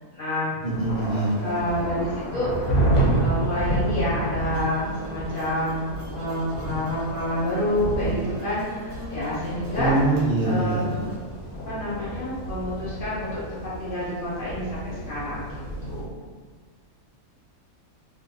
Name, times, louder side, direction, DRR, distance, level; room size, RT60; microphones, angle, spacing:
voice 1, 0.1-0.6 1.4-2.9 3.2-5.8 6.1-10.0 10.4-11.4 11.7-13.4 13.8-15.5 15.8-16.3, left 1 dB, 50° left, -8 dB, 0.7 m, -28 dB
sound 1, 0.6-16.0, right 2 dB, 90° left, 1.1 m, -30 dB
voice 2, 0.6-1.4 9.8-10.9, right 2 dB, 40° right, -8 dB, 0.7 m, -23 dB
sound 2, 0.9-11.2, right 1 dB, 85° right, 1.2 m, -41 dB
2.9 x 2.3 x 2.5 m, 1.5 s
omnidirectional pair, 1.5 m